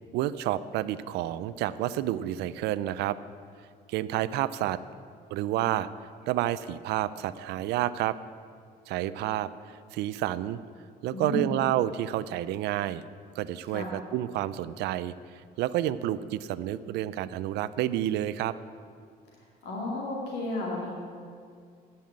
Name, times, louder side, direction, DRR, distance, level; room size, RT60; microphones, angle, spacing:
voice 1, 0.1-3.2 3.9-4.8 5.3-5.9 6.3-8.2 8.9-10.6 11.0-13.0 13.4-18.6, right 13 dB, 80° right, 15 dB, 0.5 m, -29 dB
voice 2, 11.1-11.5 13.7-14.0 19.6-20.9, left 2 dB, 80° left, -3 dB, 2.4 m, -33 dB
10.5 x 5.7 x 8.8 m, 2.2 s
cardioid pair, 110°, 17 cm